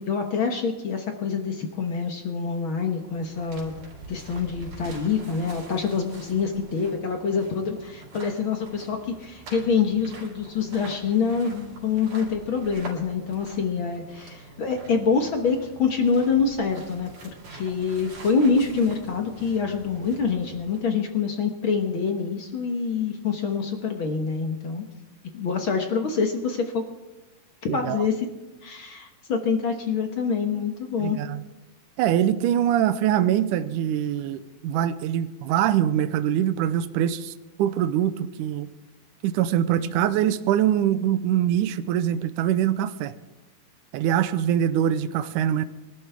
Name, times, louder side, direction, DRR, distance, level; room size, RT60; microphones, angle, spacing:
voice 1, 0.0-3.7 4.1-17.1 17.5-24.8 25.3-26.8 27.6-28.3 28.6-31.2 39.8-39.9, left 5 dB, 60° left, 4 dB, 1.3 m, -26 dB
sound 1, 2.8-21.0, right 2 dB, 60° right, 5.2 m, -45 dB
voice 2, 27.7-28.0 31.0-31.4 32.0-37.3 37.6-38.7 39.2-43.1 43.9-45.7, right 10 dB, 75° right, 11 dB, 2.0 m, -23 dB
23.5 x 12.5 x 3.5 m, 1.1 s
omnidirectional pair, 4.1 m